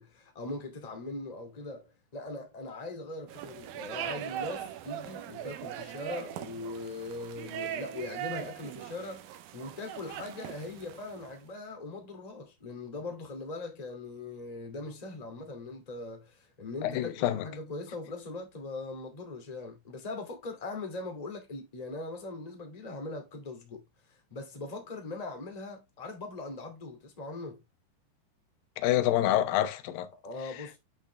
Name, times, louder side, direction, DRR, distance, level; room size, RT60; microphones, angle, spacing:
voice 1, 0.0-23.8 24.1-27.6 30.2-30.8, left 2 dB, 15° left, 1.3 m, -40 dB
entrenamiento futbol bajo lluvia, 3.3-11.4, right 11 dB, 75° right, 2.2 m, -40 dB
voice 2, 16.8-17.4 28.8-30.1, left 13 dB, 70° left, 2.3 m, -27 dB
8.5 x 5.8 x 3.3 m
omnidirectional pair, 5.0 m